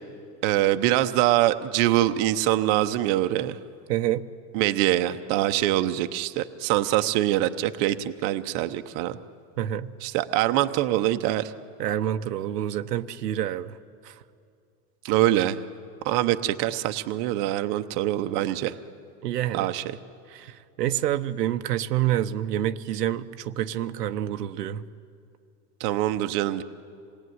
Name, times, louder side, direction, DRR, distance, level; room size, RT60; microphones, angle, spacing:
voice 1, 0.4-3.6 4.5-9.2 10.0-11.5 15.0-15.6 16.0-18.7 19.5-19.8 25.8-26.6, right 14 dB, 40° right, 0.8 m, -24 dB
voice 2, 3.9-4.2 9.6-9.9 11.8-13.8 14.0-14.1 19.2-19.7 20.3-24.8, right 11 dB, 90° right, 1.0 m, -27 dB
26.5 x 19.5 x 9.5 m
supercardioid pair, 145°, 46 cm